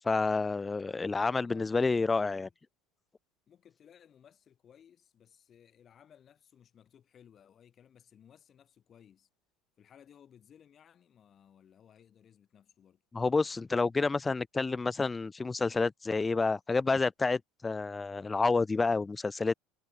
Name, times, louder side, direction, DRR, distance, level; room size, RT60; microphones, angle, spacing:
voice 1, 0.0-2.5 13.1-19.5, left 3 dB, 15° left, 0.5 m, -29 dB
voice 2, 1.1-2.5 3.5-9.3 9.8-13.0, left 9 dB, 35° left, 7.9 m, -60 dB
figure-of-eight pair, 70°, 0 cm